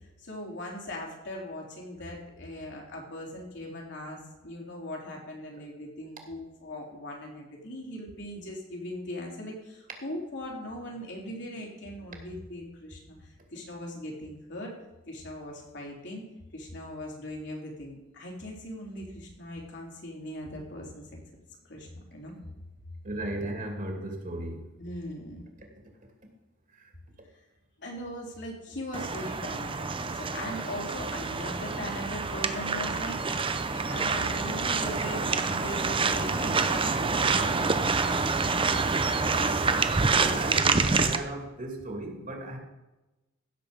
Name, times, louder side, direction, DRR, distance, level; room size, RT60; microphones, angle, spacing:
voice 1, 0.2-14.7 15.1-16.2 16.5-21.0 21.7-22.3 24.8-25.5 27.8-38.2, left 1 dB, 60° left, -1 dB, 3.7 m, -40 dB
voice 2, 23.0-24.6 26.7-26.9 40.1-42.6, right 1 dB, 40° right, 2 dB, 2.6 m, -36 dB
sound 1, 28.9-41.2, right 4 dB, 25° right, 0.7 m, -27 dB
16.5 x 7.2 x 5.2 m, 1.0 s
head